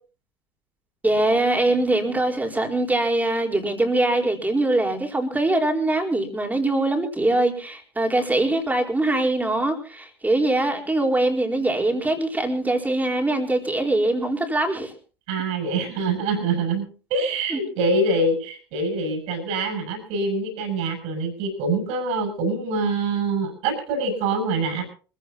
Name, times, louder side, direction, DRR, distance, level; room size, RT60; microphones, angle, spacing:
voice 1, 1.0-14.9 17.5-17.6, right 2 dB, 10° right, 3 dB, 4.4 m, -22 dB
voice 2, 15.3-24.9, right 2 dB, 60° right, 4 dB, 8.0 m, -25 dB
26.0 x 15.5 x 2.9 m, 0.38 s
figure-of-eight pair, 65°, 13 cm